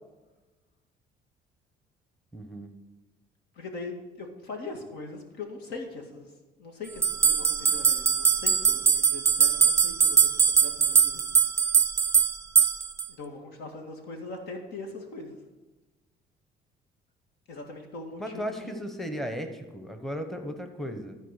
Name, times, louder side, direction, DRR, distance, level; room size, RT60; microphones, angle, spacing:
voice 1, 2.3-2.7 18.2-21.2, equal, ahead, 6 dB, 1.0 m, -35 dB
voice 2, 3.5-6.3 6.6-11.2 13.2-15.4 17.5-18.7, left 3 dB, 75° left, 3 dB, 2.1 m, -41 dB
sound 1, 7.0-13.1, right 6 dB, 15° right, 0.6 m, -22 dB
13.5 x 4.6 x 6.6 m, 1.2 s
cardioid pair, 110°, 17 cm